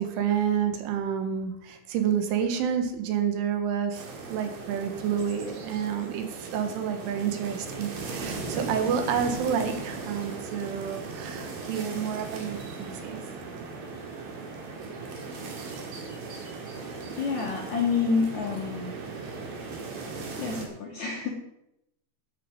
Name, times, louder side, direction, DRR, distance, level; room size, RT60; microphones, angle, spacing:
voice 1, 0.0-13.2, right 8 dB, 80° right, 7 dB, 3.9 m, -29 dB
sound 1, 3.9-20.7, right 4 dB, 55° right, 3.4 m, -38 dB
voice 2, 17.1-18.9 20.4-21.3, left 5 dB, 55° left, -1 dB, 2.3 m, -28 dB
13.0 x 10.0 x 5.2 m, 0.83 s
omnidirectional pair, 5.5 m